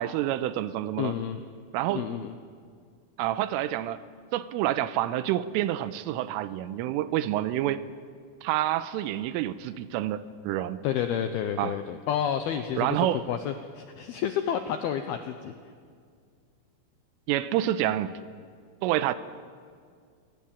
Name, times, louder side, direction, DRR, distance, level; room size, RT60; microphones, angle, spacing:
voice 1, 0.0-1.1 1.7-2.1 3.2-4.0 4.3-7.8 8.4-10.8 11.6-11.8 12.8-13.3 17.3-18.1 18.8-19.2, right 13 dB, 85° right, 14 dB, 3.4 m, -28 dB
voice 2, 1.0-1.4 1.9-2.3 10.8-13.0 13.3-15.5, left 9 dB, 80° left, 8 dB, 2.2 m, -30 dB
26.5 x 18.5 x 8.8 m, 2.1 s
omnidirectional pair, 5.7 m